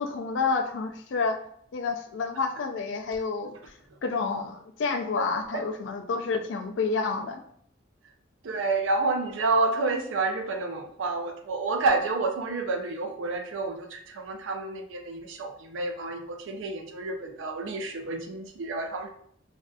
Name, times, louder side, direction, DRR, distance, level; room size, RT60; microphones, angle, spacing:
voice 1, 0.0-1.4 1.7-3.5 4.0-7.4, left 4 dB, 70° left, 6 dB, 0.4 m, -29 dB
voice 2, 8.4-19.1, right 3 dB, 85° right, 5 dB, 0.4 m, -29 dB
2.5 x 2.3 x 2.3 m, 0.64 s
head